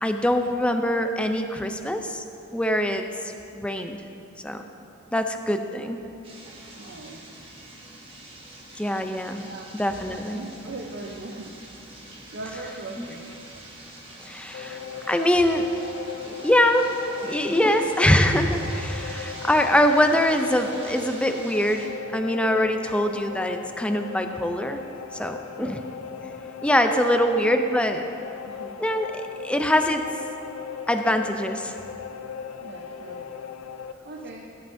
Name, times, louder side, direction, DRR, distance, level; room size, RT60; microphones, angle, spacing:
voice 1, 0.0-2.2 2.5-3.1 3.6-4.0 4.4-4.6 5.1-6.0 8.8-9.4 9.8-10.4 13.0-13.1 14.2-14.8 15.1-15.7 16.3-16.9 17.2-24.8 25.2-25.8 26.6-28.1 28.8-29.1 29.4-30.0 30.9-31.7, left 1 dB, 5° left, 6 dB, 0.4 m, -23 dB
sound 1, 6.2-21.9, right 1 dB, 25° right, 1.4 m, -44 dB
voice 2, 6.8-7.2 9.4-11.6 12.3-13.3 18.3-18.6 25.6-25.8 27.0-27.4 28.5-28.8 32.6-33.3 34.0-34.5, right 2 dB, 55° right, 0 dB, 0.6 m, -39 dB
sound 2, 14.5-33.9, left 7 dB, 80° left, 0.5 m, -38 dB
16.5 x 9.0 x 2.6 m, 2.7 s
head